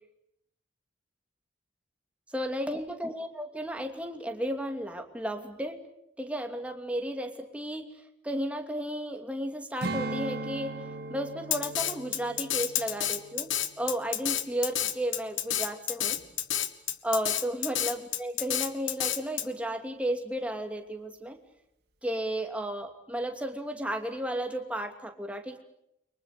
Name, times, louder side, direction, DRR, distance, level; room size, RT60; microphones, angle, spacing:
voice 1, 2.3-5.8 6.2-8.0 8.2-13.5 13.8-16.2 17.0-21.4 22.0-25.6, right 1 dB, 5° right, 4 dB, 2.8 m, -33 dB
Strum, 9.8-14.5 14.9-15.1, right 2 dB, 55° right, 3.4 m, -39 dB
Drum kit, 11.5-19.4, left 11 dB, 80° left, 1.7 m, -29 dB
30.0 x 24.5 x 6.7 m, 0.78 s
head